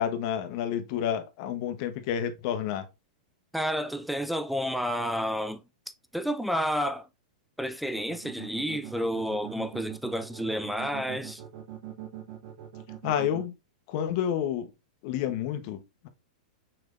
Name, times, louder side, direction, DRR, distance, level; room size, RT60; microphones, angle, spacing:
voice 1, 0.0-2.9 13.0-13.5 13.9-14.7 15.0-16.1, left 9 dB, 45° left, 0.9 m, -29 dB
voice 2, 3.5-5.6 6.1-7.1 7.6-11.4, equal, ahead, 0.3 m, -30 dB
sound 1, 7.9-13.4, right 12 dB, 55° right, 1.2 m, -41 dB
6.0 x 3.3 x 2.4 m
hypercardioid pair, 145°, 4 cm